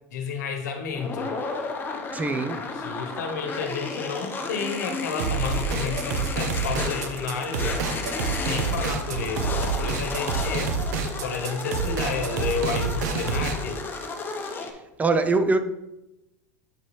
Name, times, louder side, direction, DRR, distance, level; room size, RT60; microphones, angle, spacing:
voice 1, 0.0-1.3 2.8-7.8 8.5-10.7 11.2-13.9, left 5 dB, 80° left, 1.1 m, -31 dB
sound 1, 0.9-14.7, left 4 dB, 20° left, 0.9 m, -33 dB
voice 2, 2.1-2.7 14.5-14.7 15.0-15.6, right 3 dB, 15° right, 0.5 m, -23 dB
sound 2, 5.2-13.6, right 5 dB, 75° right, 0.8 m, -28 dB
7.7 x 4.2 x 3.2 m
hypercardioid pair, 110°, 9 cm